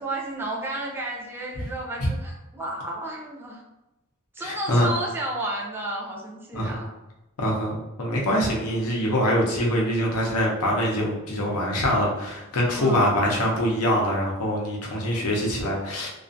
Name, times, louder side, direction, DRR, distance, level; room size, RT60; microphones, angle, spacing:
voice 1, 0.0-3.6 4.3-6.9 12.8-13.1, right 1 dB, 10° right, -3 dB, 0.4 m, -32 dB
voice 2, 4.4-4.9 6.5-6.8 7.4-16.1, equal, 85° left, -2 dB, 0.7 m, -24 dB
2.4 x 2.4 x 2.5 m, 1.0 s
head